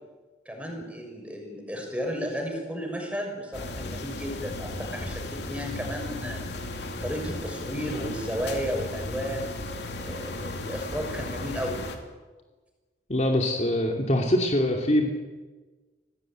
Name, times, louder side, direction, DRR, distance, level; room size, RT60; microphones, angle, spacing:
voice 1, 0.4-6.6 7.0-9.6 10.0-11.8, equal, 5° right, 2 dB, 6.5 m, -33 dB
sound 1, 3.5-12.0, left 2 dB, 65° left, 2.9 m, -35 dB
voice 2, 13.1-15.1, left 1 dB, 40° left, 2 dB, 2.6 m, -23 dB
26.5 x 18.0 x 9.1 m, 1.3 s
head